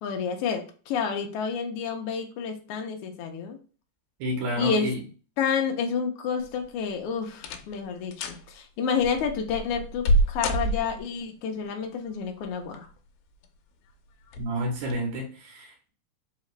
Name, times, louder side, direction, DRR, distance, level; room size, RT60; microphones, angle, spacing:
voice 1, 0.0-3.6 4.6-4.9 5.4-12.9, left 6 dB, 70° left, 1.4 m, -29 dB
voice 2, 4.2-5.0 14.4-15.9, equal, 75° right, 2.1 m, -30 dB
sound 1, 6.4-6.9 7.4-7.8 8.1-8.4 9.0-11.2 12.4-13.0 13.4-13.5 14.3-14.5 14.9-15.0, equal, 90° left, 2.0 m, -27 dB
4.8 x 2.8 x 3.2 m
omnidirectional pair, 3.4 m